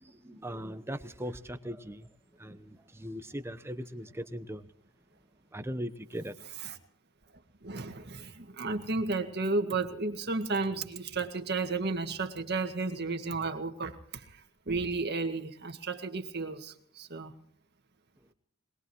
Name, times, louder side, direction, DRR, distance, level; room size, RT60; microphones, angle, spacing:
voice 1, 0.0-2.1 2.4-4.7 5.5-6.3, equal, 10° right, 0.9 m, -39 dB
voice 2, 7.6-17.3, right 3 dB, 50° right, 1.9 m, -33 dB
22.0 x 21.5 x 3.1 m
head